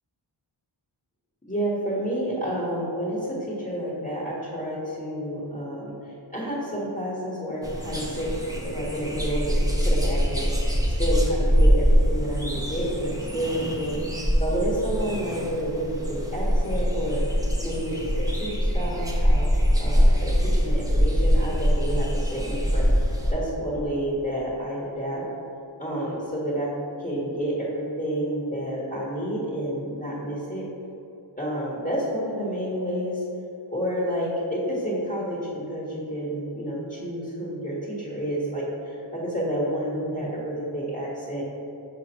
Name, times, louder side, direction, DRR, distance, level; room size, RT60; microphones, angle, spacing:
voice 1, 1.5-5.9 6.3-8.3 8.6-10.5 11.0-19.5 19.8-25.2 25.8-26.7 27.0-30.6 31.4-33.2 33.7-41.4, equal, 15° left, -7 dB, 1.3 m, -29 dB
sound 1, 7.6-23.3, equal, 5° right, 0.8 m, -23 dB
6.1 x 3.0 x 5.3 m, 2.8 s
wide cardioid pair, 50°, 49 cm